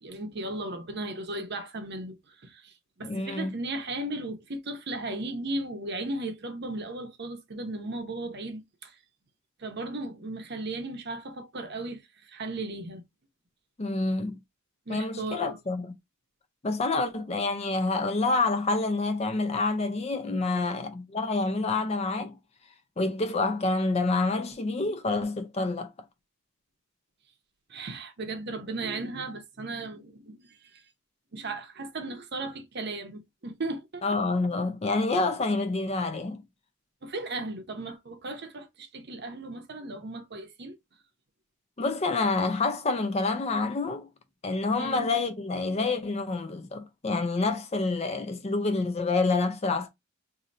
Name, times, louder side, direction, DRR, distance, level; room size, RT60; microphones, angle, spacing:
voice 1, 0.0-2.7 3.0-8.9 9.6-13.0 14.9-15.6 27.7-30.8 31.3-34.0 37.0-40.7 44.8-45.0, right 2 dB, 50° right, 0.7 m, -36 dB
voice 2, 3.0-3.5 13.8-14.4 14.9-15.9 16.6-22.4 23.0-25.9 34.0-36.4 41.8-44.1 44.4-49.9, left 3 dB, 30° left, 0.5 m, -27 dB
2.7 x 2.6 x 4.1 m
head